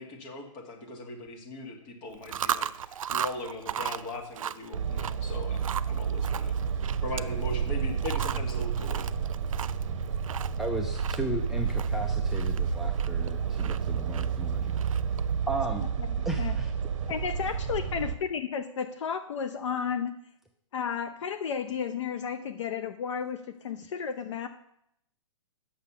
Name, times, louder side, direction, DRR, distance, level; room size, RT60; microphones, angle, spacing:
voice 1, 0.0-6.6 7.0-9.1, left 2 dB, 35° left, 2 dB, 1.9 m, -39 dB
Chewing mastication, 2.1-15.3, right 9 dB, 85° right, 0.4 m, -38 dB
sound 1, 4.7-18.2, right 6 dB, 65° right, 0.8 m, -30 dB
voice 2, 10.6-14.7 15.5-15.8 16.3-16.7, right 2 dB, ahead, 2 dB, 0.3 m, -35 dB
voice 3, 15.8-16.1 16.4-16.6 17.1-20.1 20.7-24.5, left 7 dB, 65° left, 9 dB, 0.6 m, -33 dB
8.3 x 6.6 x 5.7 m, 0.76 s
hypercardioid pair, 145°, 17 cm